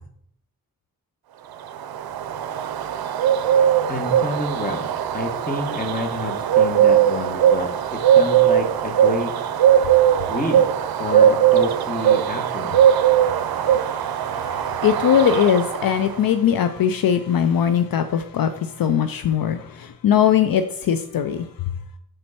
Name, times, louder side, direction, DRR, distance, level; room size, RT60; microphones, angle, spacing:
Bird, 1.6-16.3, right 10 dB, 85° right, 0.5 m, -19 dB
voice 1, 3.9-9.3 10.3-10.7 11.0-12.8, left 2 dB, 25° left, 1.5 m, -29 dB
voice 2, 13.0-21.5, left 8 dB, 70° left, 0.5 m, -21 dB
6.4 x 4.4 x 4.2 m
cardioid pair, 60°, 36 cm